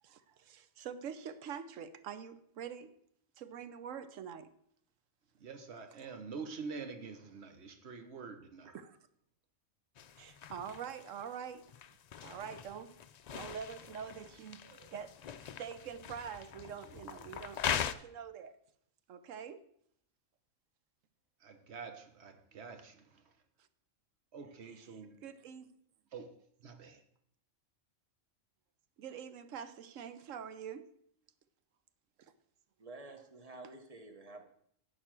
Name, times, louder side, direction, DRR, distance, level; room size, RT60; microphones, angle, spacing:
voice 1, 0.0-2.9 3.4-4.5 8.7-9.0 10.2-11.7 12.2-13.0 13.3-14.6 14.9-15.2 15.4-18.5 19.1-19.6 23.6-23.7 24.7-25.7 29.0-30.9 32.2-32.3, right 7 dB, 85° right, 1.1 m, -45 dB
voice 2, 5.4-8.8 10.3-10.4 14.6-14.9 21.4-23.2 24.3-25.2 26.1-27.0, right 5 dB, 60° right, 1.3 m, -47 dB
sound 1, 10.0-17.9, left 9 dB, 90° left, 0.3 m, -42 dB
voice 3, 32.8-34.5, right 2 dB, 30° right, 1.1 m, -50 dB
11.0 x 4.7 x 7.4 m
omnidirectional pair, 1.3 m